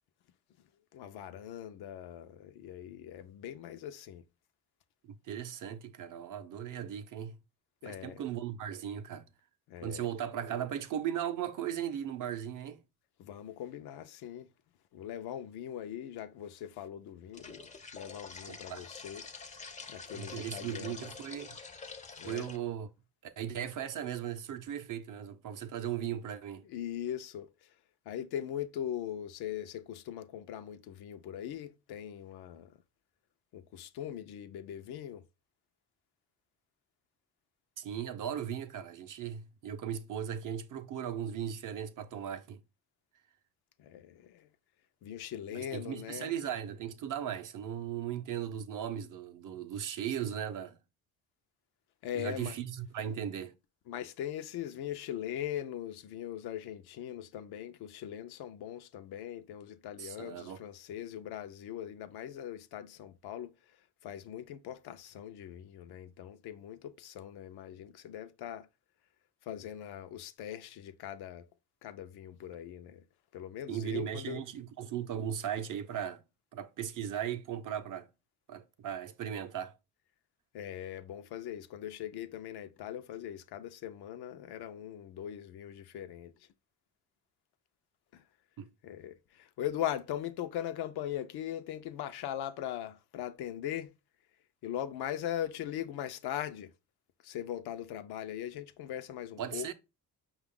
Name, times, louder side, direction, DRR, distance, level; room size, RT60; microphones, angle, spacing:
voice 1, 0.9-4.2 7.8-8.2 9.7-10.1 13.2-14.5 14.9-17.7 17.9-19.2 19.9-21.1 22.2-22.5 26.6-27.7 28.1-32.7 33.5-35.2 43.8-44.5 45.0-46.3 52.0-52.5 53.9-63.5 64.0-68.7 69.4-71.5 71.8-73.0 73.3-74.4 80.5-86.3 88.1-88.2 88.8-93.9 94.6-96.7 97.2-99.7, left 11 dB, 75° left, 0.5 m, -40 dB
voice 2, 5.0-7.4 7.9-9.2 9.8-12.8 18.5-18.9 20.1-21.6 22.2-22.9 23.2-26.6 37.8-42.6 45.5-50.8 52.1-53.5 60.0-60.6 73.7-76.2 76.5-78.1 78.5-79.7 88.6-88.7 99.4-99.7, right 9 dB, 55° right, 0.6 m, -37 dB
sound 1, 17.3-22.6, left 4 dB, 20° left, 0.4 m, -47 dB
5.2 x 2.4 x 3.6 m
cardioid pair, 90°, 39 cm